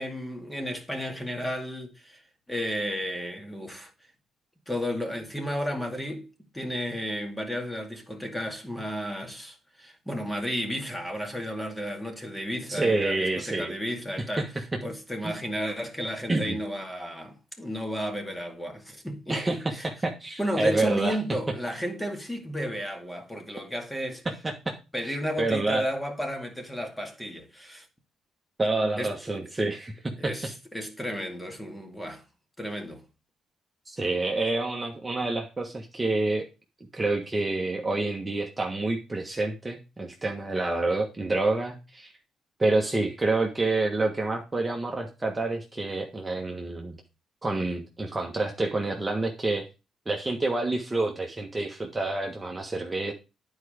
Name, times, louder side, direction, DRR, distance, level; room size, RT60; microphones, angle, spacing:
voice 1, 0.0-2.2 2.5-3.9 4.7-6.3 6.5-14.5 14.8-19.9 20.4-24.2 24.9-27.9 29.0-29.1 30.2-32.2 32.6-33.0, equal, 10° left, 2.1 m, -33 dB
voice 2, 12.7-13.7 14.4-14.5 15.2-15.3 16.3-16.6 19.3-21.2 24.2-24.7 25.0-25.8 28.6-30.3 33.9-36.5 36.9-42.1 42.6-47.0 47.4-49.7 50.0-53.1, right 2 dB, 20° right, 1.4 m, -28 dB
9.6 x 4.8 x 5.1 m
cardioid pair, 90°, 0 cm